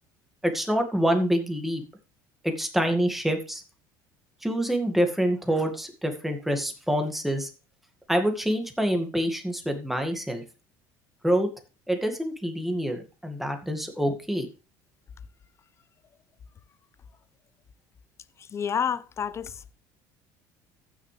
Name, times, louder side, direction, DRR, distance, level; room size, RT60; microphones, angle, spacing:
voice 1, 0.4-1.8 2.4-3.6 4.4-7.5 8.1-10.4 11.2-11.5 11.9-14.5, equal, ahead, 2.1 m, -26 dB
voice 2, 18.5-19.7, left 7 dB, 35° left, 0.7 m, -29 dB
15.0 x 6.2 x 3.4 m
supercardioid pair, 110°, 9 cm